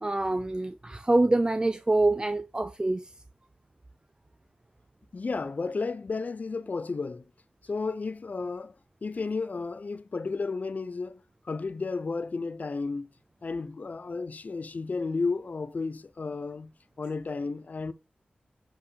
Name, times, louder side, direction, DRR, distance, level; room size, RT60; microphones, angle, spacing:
voice 1, 0.0-3.1, right 2 dB, 25° right, 0.4 m, -25 dB
voice 2, 5.1-7.2 7.6-8.7 9.0-13.1 13.4-16.7 17.0-17.9, left 4 dB, 55° left, 0.5 m, -33 dB
7.3 x 4.5 x 3.3 m
cardioid pair, 40°, 3 cm